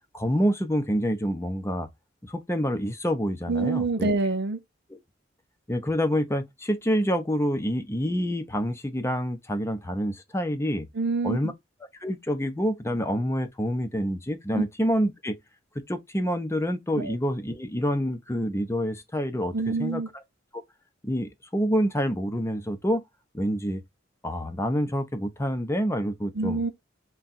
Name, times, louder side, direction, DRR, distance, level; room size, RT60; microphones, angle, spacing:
voice 1, 0.1-1.9 2.2-4.1 4.9-5.0 5.7-10.9 11.2-11.5 12.0-15.4 15.9-20.2 20.5-20.6 21.0-23.0 23.3-23.8 24.2-26.6, equal, 15° left, 0.6 m, -27 dB
voice 2, 3.5-4.6 10.9-11.5 14.5-14.6 17.0-17.1 19.5-20.1 26.3-26.7, right 3 dB, 60° right, 0.7 m, -26 dB
3.6 x 2.3 x 4.0 m
head